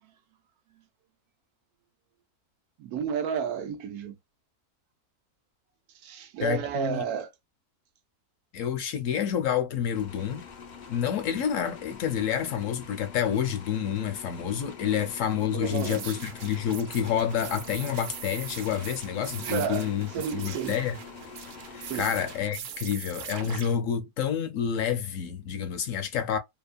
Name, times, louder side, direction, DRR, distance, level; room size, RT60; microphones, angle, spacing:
voice 1, 2.8-4.2 6.0-7.3 14.8-15.0 15.5-16.2 19.4-19.9 20.1-20.8 21.8-22.1, right 8 dB, 80° right, 1.1 m, -32 dB
voice 2, 6.4-7.0 8.5-10.4 10.9-20.1 20.3-21.0 21.7-26.4, left 9 dB, 70° left, 0.9 m, -28 dB
sound 1, 9.9-22.9, left 6 dB, 85° left, 0.4 m, -45 dB
sound 2, 15.6-23.7, right 8 dB, 65° right, 0.8 m, -42 dB
2.9 x 2.1 x 2.4 m
omnidirectional pair, 1.6 m